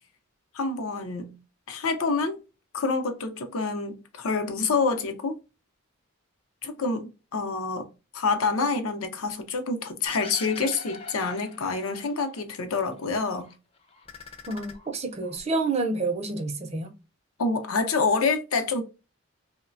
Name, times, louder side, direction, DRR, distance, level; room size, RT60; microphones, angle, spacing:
voice 1, 0.5-1.3 1.7-2.4 2.7-5.3 6.6-7.9 8.1-13.5 17.4-18.8, left 4 dB, 90° left, 0.6 m, -27 dB
sound 1, 10.1-12.4 12.7-13.6 13.9-15.4, left 4 dB, 25° left, 0.4 m, -43 dB
voice 2, 14.5-16.9, right 3 dB, 30° right, 0.4 m, -28 dB
3.0 x 2.1 x 2.5 m
head